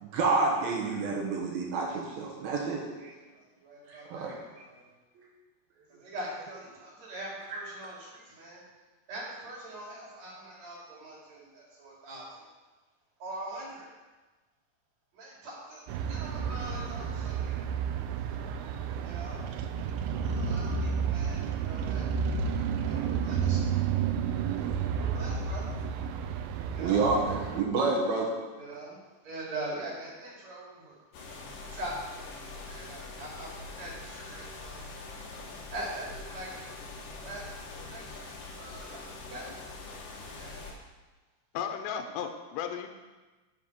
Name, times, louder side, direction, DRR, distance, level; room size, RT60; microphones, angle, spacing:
voice 1, 0.0-3.1 3.9-4.4 5.2-5.3 26.7-28.3, right 3 dB, 70° right, -1 dB, 2.7 m, -29 dB
voice 2, 2.3-2.7 3.1-4.8 5.9-8.6 9.1-12.5 13.2-13.9 15.1-17.5 19.0-19.5 20.2-22.4 22.8-23.7 24.9-25.8 26.7-27.1 28.5-29.0 29.2-31.0 31.7-34.9 35.7-36.7 37.2-39.6 40.2-40.6, right 1 dB, 45° right, -4 dB, 3.4 m, -43 dB
sound 1, 15.9-27.6, right 7 dB, 85° right, 2.9 m, -31 dB
sound 2, 31.1-40.7, left 3 dB, 60° left, 2.8 m, -43 dB
voice 3, 41.5-42.9, left 8 dB, 85° left, 5 dB, 2.9 m, -34 dB
9.3 x 6.6 x 6.0 m, 1.2 s
omnidirectional pair, 5.0 m